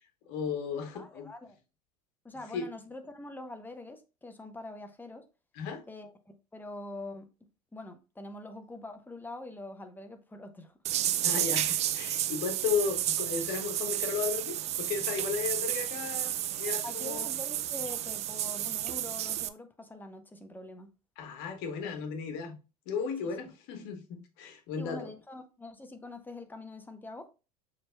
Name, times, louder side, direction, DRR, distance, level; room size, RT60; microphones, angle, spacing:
voice 1, 0.3-1.3 2.5-2.7 5.6-5.8 11.2-17.3 21.2-22.5 22.9-25.1, left 6 dB, 55° left, 1.2 m, -35 dB
voice 2, 0.9-1.6 2.2-5.2 5.9-7.3 7.7-10.7 16.8-20.9 23.2-23.3 24.8-27.3, left 2 dB, 10° left, 0.8 m, -44 dB
sound 1, 10.9-19.5, right 12 dB, 35° right, 0.4 m, -32 dB
6.4 x 3.3 x 2.2 m
hypercardioid pair, 80°, 20 cm